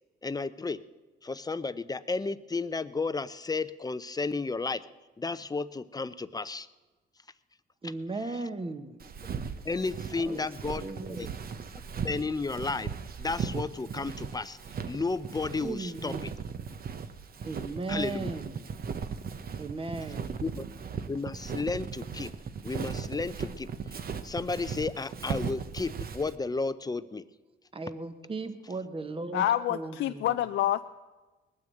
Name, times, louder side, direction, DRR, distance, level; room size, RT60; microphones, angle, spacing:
voice 1, 0.2-0.8 1.2-4.8 5.2-6.7 9.6-10.8 11.2-11.3 12.0-12.9 13.2-14.6 14.9-16.3 17.9-18.3 20.4-20.6 21.1-22.3 22.6-27.2, left 3 dB, 20° left, 14 dB, 0.6 m, -33 dB
voice 2, 7.8-9.0 10.2-10.5 10.8-11.3 15.6-16.4 17.4-18.7 19.6-20.4 27.7-30.4, right 3 dB, 25° right, 9 dB, 1.3 m, -37 dB
Walk footsteps, 9.0-26.3, right 6 dB, 50° right, 1.0 m, -38 dB
voice 3, 29.3-30.9, left 12 dB, 70° left, 9 dB, 0.5 m, -27 dB
19.5 x 9.5 x 7.8 m, 1.2 s
cardioid pair, 90°, 20 cm